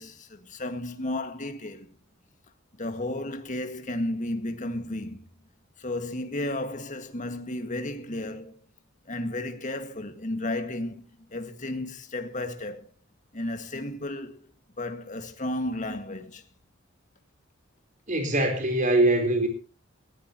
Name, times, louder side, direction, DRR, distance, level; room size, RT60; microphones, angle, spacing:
voice 1, 0.0-1.9 2.7-5.3 5.8-8.6 9.1-12.9 13.3-14.5 14.8-16.4, left 1 dB, 40° left, 1.9 m, -33 dB
voice 2, 18.1-19.5, right 1 dB, 40° right, 4.0 m, -22 dB
19.5 x 16.0 x 3.0 m
head